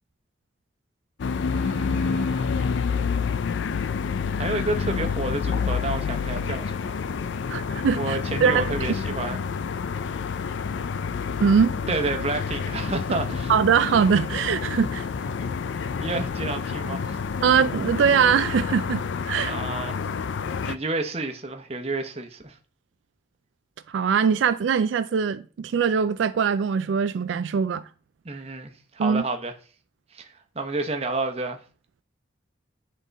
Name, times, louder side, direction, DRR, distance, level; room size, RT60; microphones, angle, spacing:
sound 1, 1.2-20.8, left 5 dB, 75° left, 0.4 m, -28 dB
voice 1, 1.5-2.7 4.3-6.9 8.0-9.4 11.9-13.5 15.3-17.2 19.4-20.0 20.6-22.6 28.2-29.5 30.1-31.6, right 2 dB, 30° right, 0.8 m, -30 dB
voice 2, 7.5-8.7 11.4-11.7 13.5-15.1 17.4-19.5 23.9-27.8 29.0-29.2, right 6 dB, 80° right, 0.3 m, -22 dB
10.0 x 3.8 x 4.0 m
head